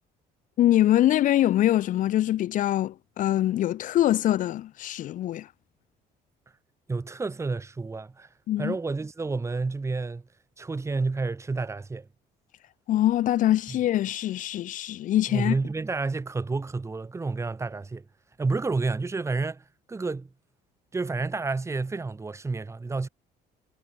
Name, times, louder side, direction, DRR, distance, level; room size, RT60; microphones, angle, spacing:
voice 1, 0.6-5.5 8.5-8.8 12.9-15.5, left 13 dB, 50° left, 0.4 m, -23 dB
voice 2, 6.9-8.3 8.6-10.3 10.6-12.1 13.7-13.8 15.3-18.1 18.4-20.3 20.9-23.1, right 3 dB, 15° right, 1.1 m, -30 dB
cardioid pair, 110°, 17 cm